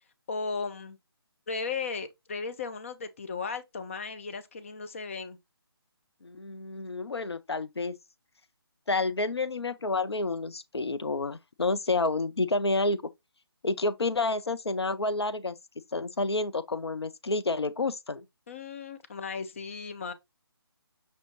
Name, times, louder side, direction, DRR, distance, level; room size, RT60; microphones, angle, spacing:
voice 1, 0.3-1.0 1.5-5.4 18.5-20.1, left 4 dB, 30° left, 0.5 m, -36 dB
voice 2, 6.2-8.0 8.9-13.0 13.6-15.6 15.9-18.2, left 3 dB, 90° left, 0.4 m, -29 dB
5.4 x 2.6 x 3.0 m
figure-of-eight pair, 150°, 13 cm